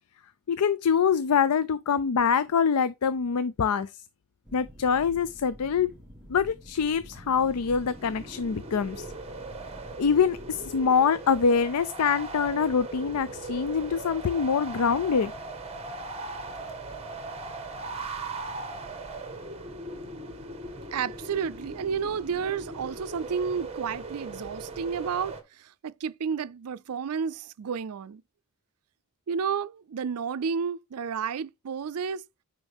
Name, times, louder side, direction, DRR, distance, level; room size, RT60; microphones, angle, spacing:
voice 1, 0.5-3.9 4.5-5.9 6.3-9.1 10.0-15.3, left 6 dB, 85° left, 0.5 m, -25 dB
sound 1, 4.4-10.7, equal, 5° right, 1.3 m, -49 dB
sound 2, 7.0-25.4, right 2 dB, 30° right, 1.4 m, -39 dB
voice 2, 20.9-28.2 29.3-32.3, right 6 dB, 85° right, 0.4 m, -31 dB
8.9 x 5.2 x 3.5 m
head